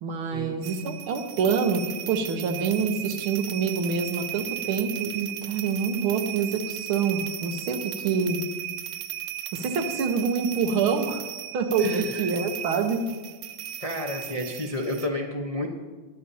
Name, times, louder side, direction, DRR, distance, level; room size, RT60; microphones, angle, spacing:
voice 1, 0.0-8.4 9.5-11.3 11.5-13.1, right 5 dB, 70° right, 5 dB, 1.8 m, -26 dB
sound 1, 0.6-15.1, right 11 dB, 90° right, 0.9 m, -36 dB
voice 2, 11.8-12.3 13.8-15.7, left 1 dB, 65° left, -1 dB, 0.3 m, -31 dB
21.5 x 8.9 x 2.8 m, 1.3 s
omnidirectional pair, 2.4 m